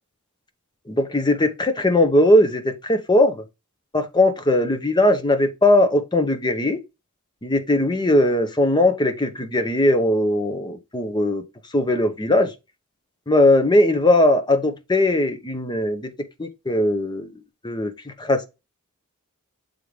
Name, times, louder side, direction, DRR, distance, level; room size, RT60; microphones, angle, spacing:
voice 1, 0.9-3.4 3.9-6.8 7.4-11.4 11.7-12.5 13.3-16.1 16.4-17.3 17.6-18.4, left 1 dB, 20° left, 0.8 m, -19 dB
7.7 x 3.6 x 3.4 m
head